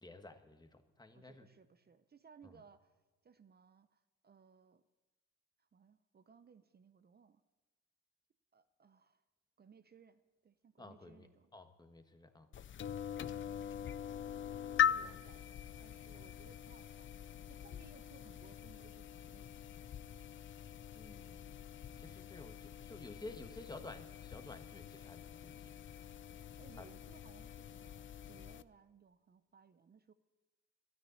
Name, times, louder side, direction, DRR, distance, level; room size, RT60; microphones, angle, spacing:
voice 1, 0.0-1.5 2.4-2.5 10.8-11.3 11.5-12.5 15.0-15.2 20.9-21.5 22.0-26.0 26.8-26.9, left 2 dB, 15° left, 7 dB, 1.3 m, -53 dB
voice 2, 1.1-2.9 3.2-4.8 5.6-7.4 8.5-9.2 9.6-11.5 13.4-13.6 14.8-19.5 26.6-30.1, right 6 dB, 30° right, 12 dB, 0.7 m, -63 dB
sound 1, 12.5-28.6, left 9 dB, 40° left, 0.5 m, -42 dB
13.0 x 9.7 x 9.4 m, 1.2 s
cardioid pair, 90°, 30 cm